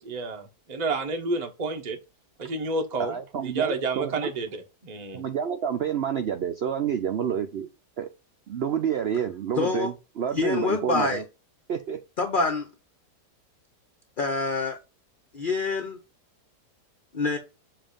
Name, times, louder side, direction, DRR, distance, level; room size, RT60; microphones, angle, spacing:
voice 1, 0.0-2.0 2.4-4.5 4.8-5.2, right 3 dB, 30° right, 1.0 m, -30 dB
voice 2, 3.0-4.3 5.1-7.7 8.0-8.1 8.5-11.2 11.7-12.0, right 8 dB, 80° right, 0.5 m, -29 dB
voice 3, 9.6-9.9 10.3-11.2 12.2-12.7 14.2-14.8 15.3-16.0 17.1-17.4, left 4 dB, 45° left, 0.7 m, -26 dB
7.5 x 2.7 x 5.1 m
omnidirectional pair, 1.8 m